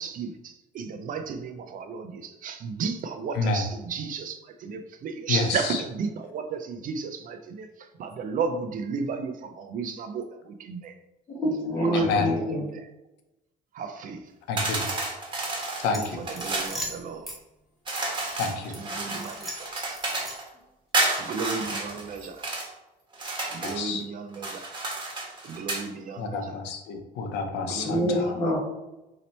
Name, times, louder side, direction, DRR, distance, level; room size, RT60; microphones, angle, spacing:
voice 1, 0.0-11.0 11.8-12.9 13.7-14.3 15.4-15.5 15.9-17.3 18.7-20.0 21.2-22.5 23.5-24.6 25.4-26.5 27.6-28.5, right 5 dB, 55° right, 7 dB, 0.4 m, -34 dB
voice 2, 5.3-5.8 11.9-12.3 14.5-15.0 15.8-16.2 18.3-18.8 23.6-24.0 26.2-28.4, left 4 dB, 90° left, 4 dB, 0.7 m, -29 dB
voice 3, 11.3-12.6 27.8-28.6, equal, 30° left, -7 dB, 1.5 m, -25 dB
sound 1, 14.6-16.8 17.9-20.4 20.9-22.7 23.1-23.8 24.3-25.9, right 2 dB, 30° right, 1.3 m, -31 dB
sound 2, 15.9-17.4 17.9-18.8 19.1-20.6, equal, ahead, 1.4 m, -39 dB
4.2 x 2.8 x 4.2 m, 0.97 s
cardioid pair, 110°, 17 cm